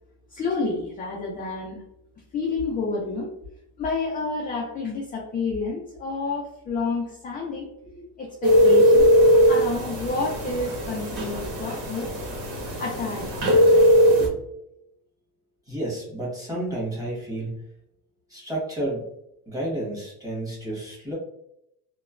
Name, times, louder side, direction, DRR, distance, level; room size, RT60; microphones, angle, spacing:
voice 1, 0.3-1.8 2.3-3.3 3.8-7.7 8.2-9.1 9.5-12.1 12.8-13.3 14.2-14.3, left 3 dB, 25° left, -1 dB, 0.4 m, -29 dB
sound 1, 8.4-14.3, equal, 75° right, 1.2 m, -19 dB
voice 2, 15.7-17.6 18.3-19.1 19.5-21.1, right 1 dB, 10° right, -6 dB, 1.3 m, -31 dB
2.9 x 2.1 x 2.4 m, 0.79 s
cardioid pair, 135°, 39 cm